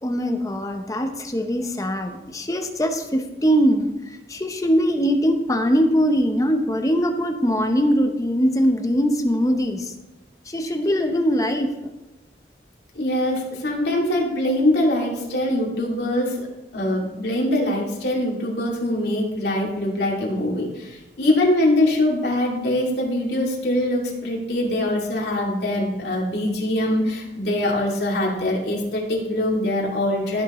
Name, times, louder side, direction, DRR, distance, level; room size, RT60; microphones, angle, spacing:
voice 1, 0.0-3.9 4.3-9.9 10.5-11.7, equal, 20° left, 5 dB, 0.8 m, -21 dB
voice 2, 12.9-16.5 16.7-30.4, left 1 dB, 70° left, -2 dB, 2.5 m, -23 dB
15.0 x 6.7 x 3.1 m, 1.0 s
head